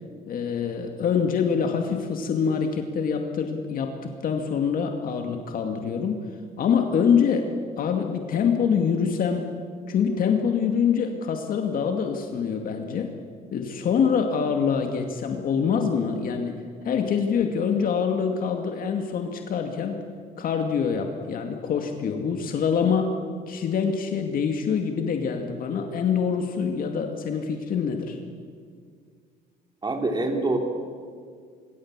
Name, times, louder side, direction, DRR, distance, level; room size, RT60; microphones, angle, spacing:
voice 1, 0.3-6.3 6.6-7.5 7.8-9.5 9.9-13.2 13.5-20.0 20.4-23.2 23.5-28.2, left 6 dB, 55° left, 4 dB, 2.2 m, -25 dB
voice 2, 29.8-30.6, right 2 dB, 25° right, 3 dB, 3.9 m, -25 dB
25.5 x 23.5 x 7.5 m, 2.1 s
cardioid pair, 110°, 17 cm